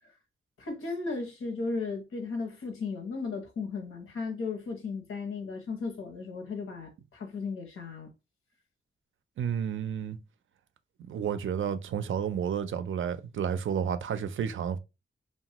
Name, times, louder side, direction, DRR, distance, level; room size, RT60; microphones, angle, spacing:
voice 1, 0.6-8.1, left 4 dB, 85° left, 0.8 m, -35 dB
voice 2, 9.4-10.2 11.1-14.8, right 8 dB, 70° right, 0.4 m, -31 dB
3.0 x 2.2 x 2.9 m
wide cardioid pair, 140°, 21 cm